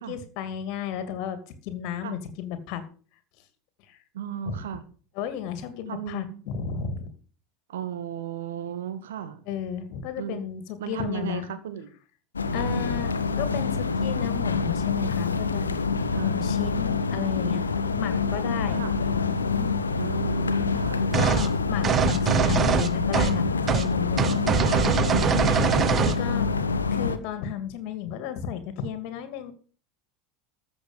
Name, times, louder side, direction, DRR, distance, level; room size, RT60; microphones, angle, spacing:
voice 1, 0.1-2.8 3.9-4.0 4.4-4.6 5.2-7.1 9.5-11.5 12.5-15.7 16.2-17.6 17.9-18.8 21.1-24.4 26.0-26.5 26.9-29.5, left 8 dB, 50° left, 11 dB, 2.5 m, -33 dB
voice 2, 4.1-4.8 5.9-6.4 7.7-9.4 10.2-10.5 10.8-11.9 12.5-13.3 16.1-16.3 18.7-18.9 20.0-21.0 24.3-24.8 25.5-25.8, right 9 dB, 65° right, 10 dB, 1.8 m, -35 dB
sound 1, 12.4-27.2, left 4 dB, 80° left, 1.0 m, -26 dB
sound 2, 21.1-21.5 21.8-23.4 23.7-23.9 24.2-26.2, right 8 dB, 30° right, 0.5 m, -23 dB
14.0 x 6.9 x 6.6 m, 0.39 s
figure-of-eight pair, 75°, 0 cm